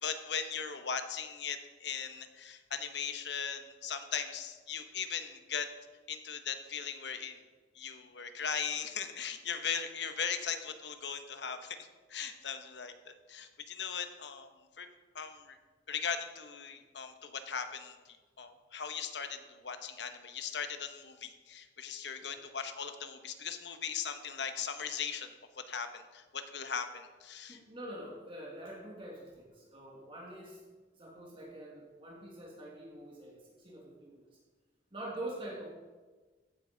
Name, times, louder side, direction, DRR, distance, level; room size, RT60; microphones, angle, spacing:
voice 1, 0.0-5.7 6.1-7.4 7.7-14.5 14.8-14.9 15.1-15.6 15.9-25.3 25.7-27.6, left 7 dB, 65° left, 8 dB, 1.0 m, -39 dB
voice 2, 27.5-30.6 30.9-34.2 34.9-35.7, right 1 dB, 30° right, -3 dB, 1.9 m, -45 dB
15.0 x 8.5 x 3.9 m, 1.3 s
head